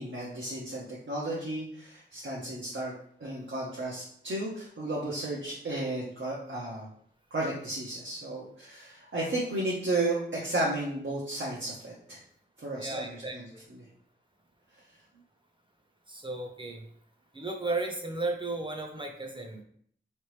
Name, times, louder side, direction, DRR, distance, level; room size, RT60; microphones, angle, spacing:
voice 1, 0.0-2.9 3.2-6.9 7.3-12.2 12.6-13.4, right 2 dB, 75° right, -6 dB, 1.0 m, -33 dB
voice 2, 12.8-13.6 16.1-16.8 17.3-19.6, right 2 dB, 25° right, 2 dB, 0.8 m, -35 dB
4.1 x 3.3 x 3.2 m, 0.63 s
wide cardioid pair, 50°, 19 cm